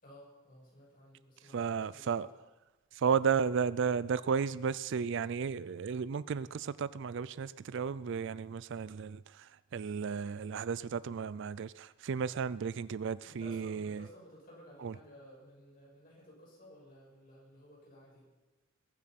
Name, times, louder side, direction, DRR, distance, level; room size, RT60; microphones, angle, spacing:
voice 1, 0.0-2.3 13.2-18.2, equal, 40° left, 6.5 m, -56 dB
voice 2, 1.5-2.3 3.0-9.2 9.7-14.0 14.8-14.9, right 6 dB, 60° right, 0.4 m, -33 dB
21.0 x 7.9 x 5.9 m
head